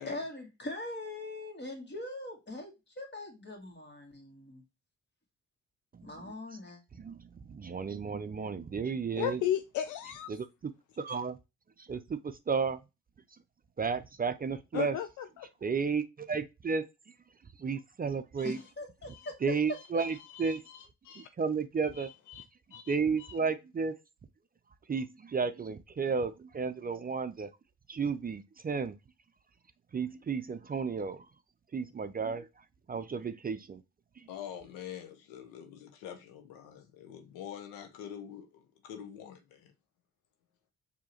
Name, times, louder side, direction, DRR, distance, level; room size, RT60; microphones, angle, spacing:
voice 1, 0.1-4.6 6.0-6.8 18.4-19.3 19.9-20.0, left 2 dB, 35° left, 2.1 m, -42 dB
voice 2, 5.9-6.3 6.9-9.4 10.3-10.7 11.0-11.4 11.8-12.8 13.8-15.0 15.6-16.8 17.6-18.6 19.4-20.6 21.2-22.1 22.9-23.9 24.9-27.5 27.9-29.0 29.9-31.3 31.7-32.5 32.9-33.8 34.2-34.3, right 5 dB, 30° right, 0.5 m, -33 dB
voice 3, 9.2-10.3 14.7-15.5 19.1-19.3 20.0-21.3 22.0-22.4 22.7-23.4, left 11 dB, 70° left, 0.5 m, -36 dB
voice 4, 34.3-39.7, left 9 dB, 90° left, 0.8 m, -45 dB
4.6 x 2.9 x 2.9 m
supercardioid pair, 55°, 32 cm